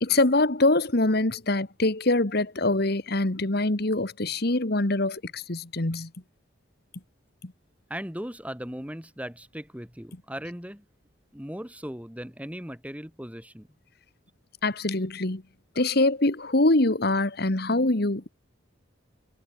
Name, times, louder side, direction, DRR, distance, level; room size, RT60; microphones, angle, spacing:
voice 1, 0.0-6.1 7.4-7.5 14.6-15.4 15.7-18.3, left 2 dB, 50° left, 1.7 m, -24 dB
voice 2, 7.9-10.8 11.3-13.7, equal, 5° right, 5.3 m, -38 dB
head